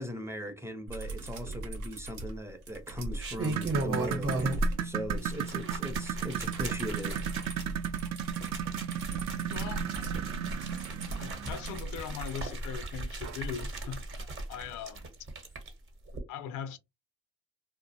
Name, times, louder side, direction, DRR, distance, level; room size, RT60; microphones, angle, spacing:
voice 1, 0.0-7.3, equal, 10° right, 0.5 m, -39 dB
sound 1, 0.9-4.8 6.2-12.4 14.2-14.3, right 3 dB, 75° right, 0.8 m, -42 dB
sound 2, 1.5-2.1 2.9-4.8 5.1-15.7 16.1-16.2, right 1 dB, 45° right, 0.9 m, -36 dB
sound 3, 3.4-11.8 13.2-13.4 13.8-13.9 14.6-14.7, right 9 dB, 60° right, 0.5 m, -35 dB
voice 2, 9.5-9.9 11.2-15.1 16.3-16.8, left 8 dB, 80° left, 0.5 m, -40 dB
2.4 x 2.0 x 2.6 m
cardioid pair, 90°, 30 cm